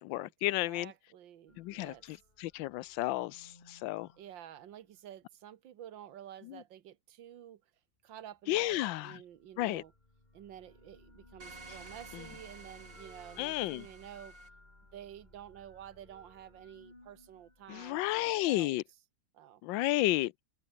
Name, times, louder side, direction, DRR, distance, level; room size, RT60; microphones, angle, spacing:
voice 1, 0.0-0.9 1.6-4.1 6.5-6.6 8.5-9.2 9.6-9.8 13.4-13.8 17.7-18.8 19.6-20.3, left 17 dB, 85° left, 1.3 m, -32 dB
voice 2, 0.7-2.1 4.2-7.6 8.0-9.9 10.3-14.4 14.9-18.8 19.3-19.6, right 11 dB, 85° right, 1.9 m, -50 dB
sound 1, 1.5-5.1 9.3-18.6, left 2 dB, 25° left, 3.6 m, -59 dB
sound 2, 11.4-14.5, right 3 dB, 45° right, 3.7 m, -52 dB
open air
omnidirectional pair, 2.0 m